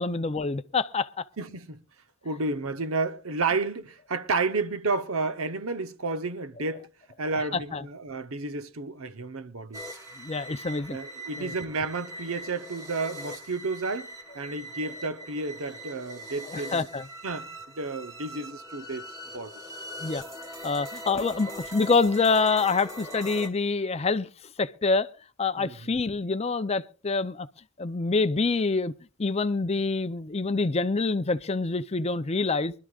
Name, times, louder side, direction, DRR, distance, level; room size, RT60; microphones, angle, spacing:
voice 1, 0.0-1.2 7.7-7.8 10.2-11.0 11.4-11.5 16.5-17.1 20.0-20.2 20.6-24.3 24.6-25.1 25.4-27.5 27.8-28.9 29.2-32.7, left 4 dB, 30° left, 0.5 m, -26 dB
voice 2, 1.4-1.8 2.2-6.9 7.2-9.8 10.9-14.1 14.3-16.8 17.2-19.1 19.3-19.5 25.6-25.9, right 3 dB, 65° right, 0.9 m, -31 dB
sound 1, 9.7-23.5, right 1 dB, 15° right, 2.1 m, -41 dB
24.0 x 12.5 x 2.4 m
head